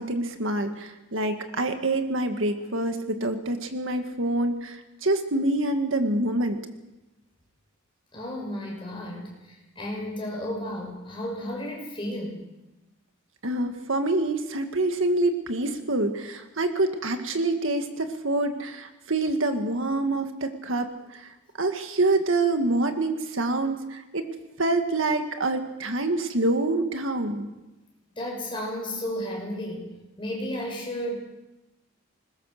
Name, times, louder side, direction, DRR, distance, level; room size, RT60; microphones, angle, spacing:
voice 1, 0.0-6.6 13.4-24.2 24.6-27.5, right 2 dB, 65° right, 6 dB, 1.8 m, -26 dB
voice 2, 8.1-12.4 28.1-29.9 30.2-31.2, equal, 25° left, -1 dB, 6.1 m, -33 dB
21.5 x 20.5 x 6.6 m, 1.0 s
head